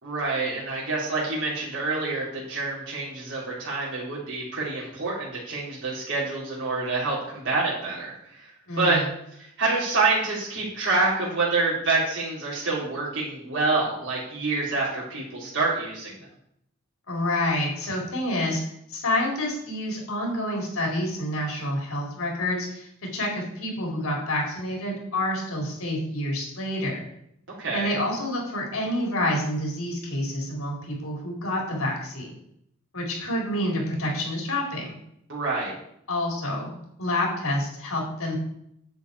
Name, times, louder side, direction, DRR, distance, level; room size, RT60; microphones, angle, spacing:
voice 1, 0.0-8.5 8.8-9.0 9.4-16.1 27.6-28.0 35.3-35.8, right 3 dB, 60° right, -7 dB, 3.6 m, -27 dB
voice 2, 8.7-9.1 17.1-18.6 18.9-27.1 27.7-32.3 32.9-35.0 36.1-36.7 37.0-38.4, left 1 dB, 85° left, -1 dB, 4.3 m, -28 dB
9.6 x 8.4 x 4.8 m, 0.74 s
head